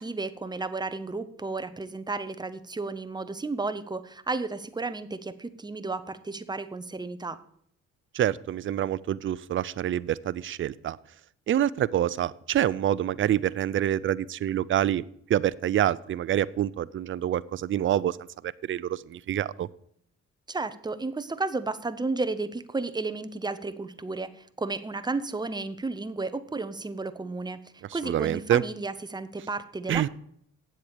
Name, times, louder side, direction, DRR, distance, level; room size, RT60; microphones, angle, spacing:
voice 1, 0.0-7.4 20.5-27.6 27.9-30.1, right 3 dB, 15° right, 12 dB, 0.8 m, -33 dB
voice 2, 8.1-11.0 11.5-15.0 15.3-18.2 18.7-19.7 27.9-28.6 29.9-30.1, right 11 dB, 40° right, 18 dB, 0.5 m, -26 dB
8.7 x 7.6 x 6.7 m, 0.68 s
cardioid pair, 90°, 30 cm